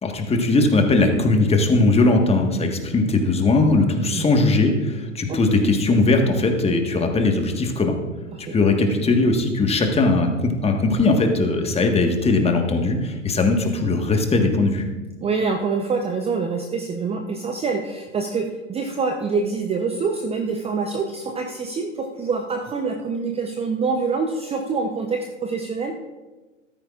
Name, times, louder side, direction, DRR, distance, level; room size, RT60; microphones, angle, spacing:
voice 1, 0.0-7.9 8.5-14.8, left 3 dB, 15° left, 3 dB, 1.5 m, -19 dB
voice 2, 4.1-4.5 5.3-5.4 8.3-8.5 15.2-26.0, right 4 dB, 15° right, 4 dB, 0.7 m, -26 dB
14.5 x 13.0 x 2.5 m, 1.2 s
hypercardioid pair, 100°, 38 cm